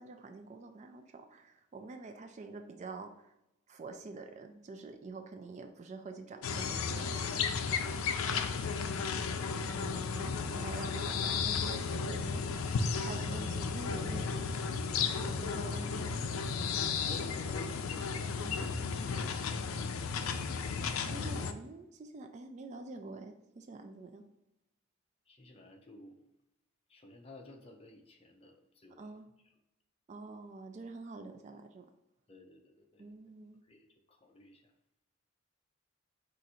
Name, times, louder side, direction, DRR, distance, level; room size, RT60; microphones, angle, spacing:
voice 1, 0.0-3.3 3.7-7.4 9.6-14.5 15.3-16.2 18.4-18.7 21.0-24.2 28.9-29.3 30.1-31.9 33.0-33.6, right 3 dB, 35° right, 6 dB, 0.3 m, -47 dB
sound 1, 6.4-21.5, left 5 dB, 90° left, 0.4 m, -34 dB
voice 2, 16.9-19.6 25.3-26.2 26.9-29.2 32.3-33.1 33.7-34.6, left 1 dB, 30° left, 3 dB, 0.6 m, -54 dB
4.8 x 2.5 x 4.2 m, 0.88 s
head